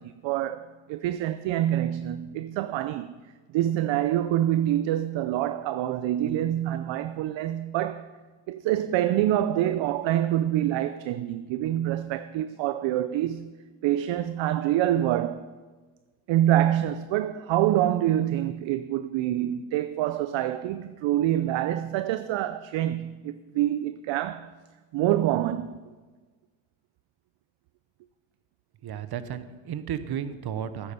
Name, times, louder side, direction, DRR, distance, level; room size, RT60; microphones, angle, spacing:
voice 1, 0.0-3.1 3.5-8.1 8.5-13.6 13.8-15.5 16.3-24.5 24.9-25.8, right 12 dB, 65° right, 0.6 m, -26 dB
voice 2, 28.8-30.9, right 9 dB, 50° right, 1.1 m, -33 dB
13.5 x 9.8 x 5.4 m
supercardioid pair, 80°, 49 cm